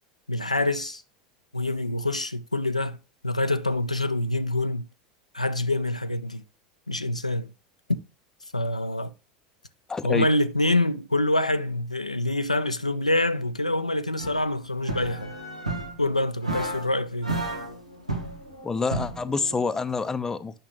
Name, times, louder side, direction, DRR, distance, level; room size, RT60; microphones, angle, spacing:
voice 1, 0.3-1.0 1.5-3.0 3.2-4.9 5.3-6.4 6.9-7.5 8.5-9.1 10.0-15.3 16.0-17.3, left 1 dB, 85° left, 0.5 m, -26 dB
voice 2, 9.9-10.3 18.6-20.6, left 4 dB, 15° left, 0.6 m, -27 dB
sound 1, 14.2-14.4 14.8-16.0 16.4-16.9 17.2-19.6, right 2 dB, 85° right, 1.5 m, -32 dB
8.7 x 5.9 x 3.0 m
figure-of-eight pair, 80°, 4 cm